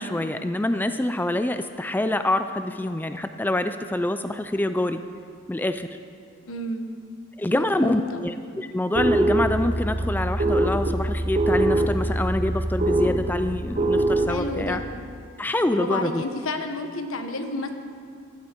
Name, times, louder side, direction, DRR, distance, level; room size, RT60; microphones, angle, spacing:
voice 1, 0.0-5.0 5.5-5.9 7.4-14.8 15.4-16.2, left 1 dB, 10° left, 9 dB, 0.3 m, -26 dB
voice 2, 6.4-6.9 7.5-8.2 14.3-14.8 15.7-17.7, left 2 dB, 85° left, 6 dB, 1.1 m, -30 dB
sound 1, 8.9-14.7, right 1 dB, 35° right, 0.7 m, -24 dB
14.0 x 13.5 x 4.5 m, 2.3 s
head